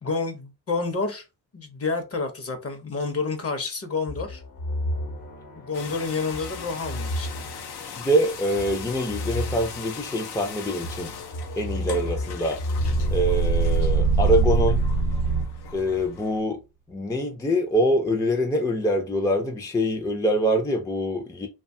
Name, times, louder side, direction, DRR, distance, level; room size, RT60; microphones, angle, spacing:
voice 1, 0.0-1.2 1.5-4.4 5.6-7.5, left 4 dB, 40° left, 0.8 m, -29 dB
sound 1, 4.1-13.6, left 1 dB, 60° left, 1.0 m, -33 dB
sound 2, 5.7-16.4, left 7 dB, 80° left, 0.7 m, -40 dB
voice 2, 8.0-11.1 11.6-12.6 13.1-14.8 15.7-16.6 16.9-21.5, equal, 10° left, 0.4 m, -24 dB
sound 3, 12.8-15.8, right 4 dB, 60° right, 0.8 m, -22 dB
2.8 x 2.3 x 2.6 m
cardioid pair, 95°, 38 cm